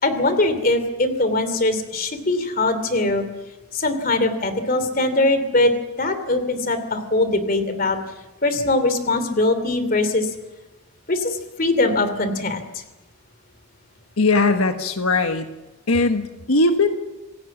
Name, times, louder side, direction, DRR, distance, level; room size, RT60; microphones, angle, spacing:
voice 1, 0.0-3.3 3.7-5.7 6.0-8.0 8.4-10.3 11.1-12.8, left 2 dB, 40° left, 10 dB, 2.8 m, -21 dB
voice 2, 14.2-15.5 15.9-17.0, left 3 dB, 90° left, 7 dB, 1.4 m, -19 dB
26.5 x 17.0 x 7.3 m, 1.1 s
head